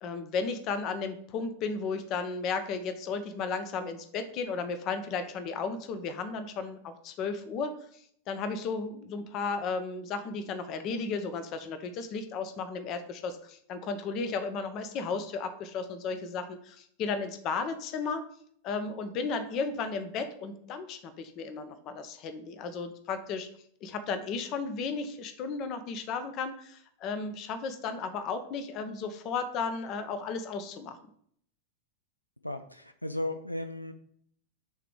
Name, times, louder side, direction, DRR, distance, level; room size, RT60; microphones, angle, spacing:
voice 1, 0.0-18.2 18.6-23.5 23.8-31.0, left 4 dB, 35° left, 10 dB, 0.7 m, -34 dB
voice 2, 32.4-33.9, left 1 dB, 90° left, 8 dB, 0.3 m, -35 dB
6.6 x 3.0 x 4.8 m, 0.64 s
figure-of-eight pair, 90°, 0 cm